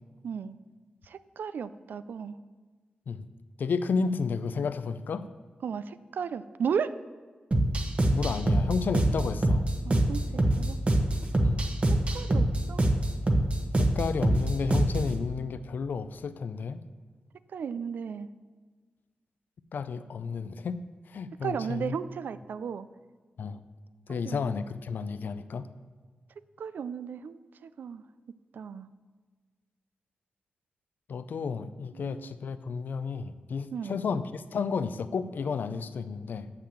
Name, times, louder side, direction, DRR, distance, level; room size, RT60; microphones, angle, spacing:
voice 1, 0.2-0.5 1.1-2.4 5.6-6.9 9.9-10.8 11.9-12.8 17.5-18.3 21.4-22.9 24.1-24.5 26.6-28.0 28.5-28.9 31.9-32.3 33.7-34.0, right 7 dB, 80° right, 14 dB, 0.4 m, -35 dB
voice 2, 3.6-5.3 8.1-9.7 11.4-11.6 13.8-16.8 19.7-20.8 21.1-22.0 23.4-23.6 24.1-25.7 31.1-36.5, left 5 dB, 80° left, 12 dB, 0.5 m, -32 dB
sound 1, 7.5-15.1, right 1 dB, 40° right, 1.1 m, -25 dB
6.6 x 5.8 x 7.3 m, 1.5 s
cardioid pair, 60°, 3 cm